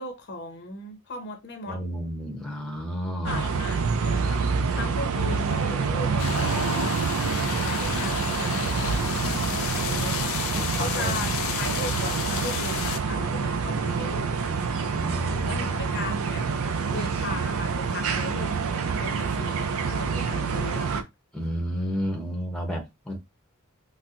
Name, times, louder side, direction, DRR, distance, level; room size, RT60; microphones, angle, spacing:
voice 1, 0.0-1.8 3.2-6.5 7.5-8.5 9.6-10.3 10.7-14.6 15.5-16.4 16.9-18.6 19.0-21.1, left 2 dB, 55° left, 0.8 m, -37 dB
voice 2, 1.7-3.6 5.9-6.7 10.5-11.5 13.9-14.1 14.9-16.1 21.3-23.2, equal, 5° left, 0.7 m, -32 dB
sound 1, 3.2-21.0, right 5 dB, 85° right, 0.5 m, -27 dB
sound 2, 6.2-13.0, left 9 dB, 75° left, 0.4 m, -32 dB
4.1 x 2.1 x 2.5 m
head